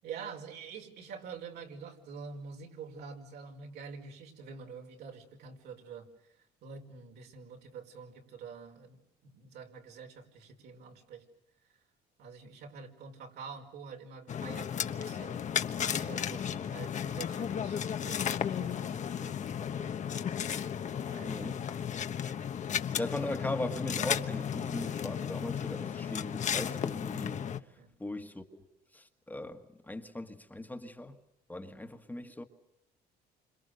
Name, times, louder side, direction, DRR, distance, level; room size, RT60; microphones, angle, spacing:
voice 1, 0.0-11.3 12.2-15.4 15.8-20.0 21.0-21.7 27.8-27.9, right 5 dB, 75° right, 5.3 m, -47 dB
sound 1, 14.3-27.6, left 8 dB, 45° left, 1.2 m, -34 dB
voice 2, 21.2-21.6 23.0-27.5 28.0-28.7 28.9-31.2 31.5-32.4, left 1 dB, 10° left, 1.7 m, -39 dB
28.5 x 26.5 x 6.7 m
cardioid pair, 110°, 17 cm